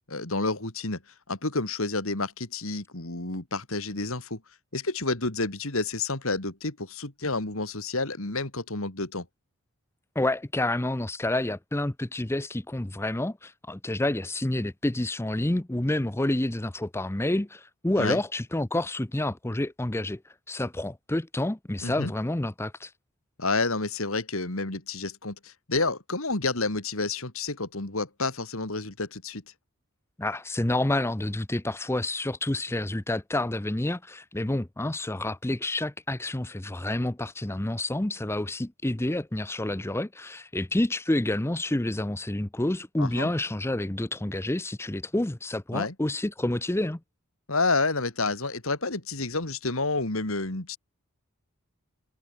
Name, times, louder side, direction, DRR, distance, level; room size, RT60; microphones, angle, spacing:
voice 1, 0.1-1.0 1.3-4.4 4.7-9.3 18.0-18.2 21.8-22.1 23.4-29.4 43.0-43.3 45.7-45.9 47.5-50.8, left 3 dB, 65° left, 2.8 m, -29 dB
voice 2, 10.1-22.9 30.2-47.0, left 1 dB, 10° left, 0.6 m, -29 dB
head